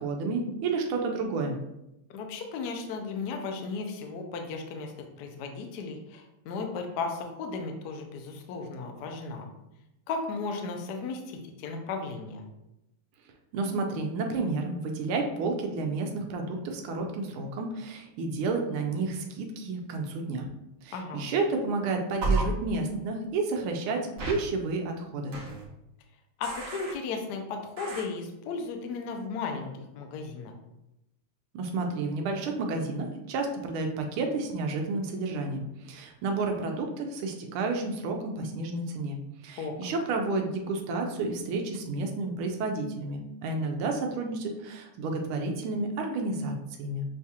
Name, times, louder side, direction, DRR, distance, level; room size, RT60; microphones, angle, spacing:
voice 1, 0.0-1.6 13.5-20.5 20.8-25.4 31.5-47.0, right 3 dB, 75° right, 2 dB, 1.5 m, -31 dB
voice 2, 2.1-9.5 10.1-12.4 20.9-21.2 26.4-30.5 39.6-39.7, left 4 dB, 70° left, 3 dB, 0.9 m, -35 dB
sound 1, 22.2-22.4 24.2-24.3 25.3-25.6 26.4-26.9 27.8-28.0, right 3 dB, 55° right, 1.0 m, -30 dB
6.6 x 2.4 x 2.8 m, 0.90 s
omnidirectional pair, 2.4 m